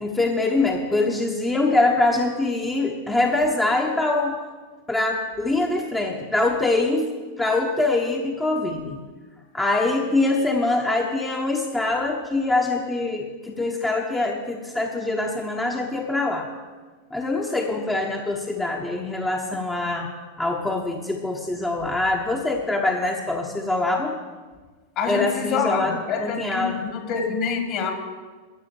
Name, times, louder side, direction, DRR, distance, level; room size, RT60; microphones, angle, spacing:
voice 1, 0.0-4.4 4.9-9.0 9.5-16.5 17.1-20.1 20.4-24.2 25.1-26.8, left 2 dB, 10° left, 1 dB, 1.0 m, -24 dB
voice 2, 25.0-27.9, left 5 dB, 40° left, 4 dB, 2.4 m, -26 dB
13.5 x 7.7 x 7.0 m, 1.4 s
figure-of-eight pair, 90°, 0 cm